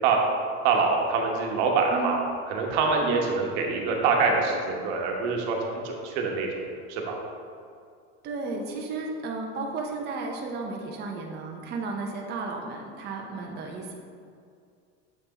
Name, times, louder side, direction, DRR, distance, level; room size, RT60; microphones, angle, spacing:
voice 1, 0.6-2.2 2.5-6.5 6.9-7.2, right 4 dB, 75° right, 0 dB, 1.1 m, -25 dB
voice 2, 8.2-13.9, right 3 dB, 30° right, 0 dB, 0.6 m, -33 dB
7.1 x 3.4 x 4.0 m, 2.3 s
supercardioid pair, 125°, 35 cm